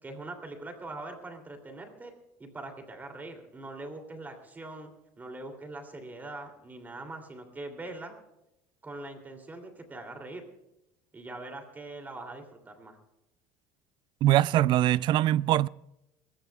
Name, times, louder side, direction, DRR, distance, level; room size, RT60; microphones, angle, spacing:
voice 1, 0.0-2.1 2.4-4.9 5.2-8.2 8.8-10.4 11.1-13.0, right 2 dB, 20° right, 2.8 m, -42 dB
voice 2, 14.2-15.7, right 13 dB, 50° right, 0.4 m, -22 dB
28.0 x 15.0 x 2.3 m
cardioid pair, 125°, 10 cm